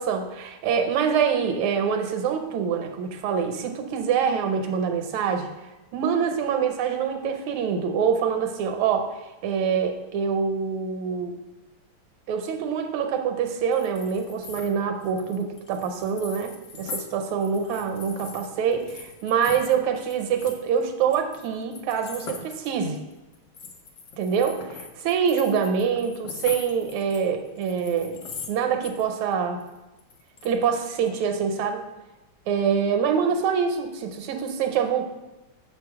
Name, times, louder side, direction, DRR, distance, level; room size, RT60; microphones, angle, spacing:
voice 1, 0.0-5.5 5.9-11.3 12.3-23.0 24.2-24.6 25.0-28.2 28.5-29.6 30.4-31.8 32.5-35.1, right 7 dB, 85° right, 5 dB, 1.6 m, -25 dB
sound 1, 13.7-17.0 17.3-28.5 28.8-29.3 29.6-31.1, left 5 dB, 60° left, 1.3 m, -41 dB
6.8 x 3.4 x 4.7 m, 1.0 s
omnidirectional pair, 2.3 m